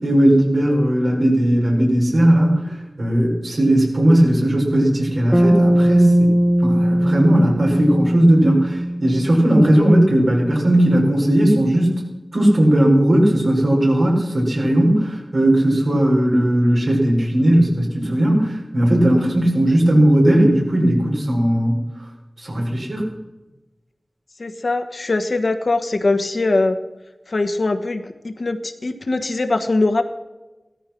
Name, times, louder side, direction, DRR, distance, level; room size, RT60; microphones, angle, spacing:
voice 1, 0.0-2.6 3.0-6.3 6.6-12.0 12.3-21.8 22.4-23.1, right 1 dB, 80° right, -2 dB, 5.5 m, -17 dB
Bass guitar, 5.3-9.7, equal, 15° right, 0.8 m, -19 dB
voice 2, 24.4-26.8 27.3-30.0, left 2 dB, 80° left, 7 dB, 1.3 m, -21 dB
16.5 x 13.5 x 6.0 m, 1.1 s
wide cardioid pair, 55°, 0 cm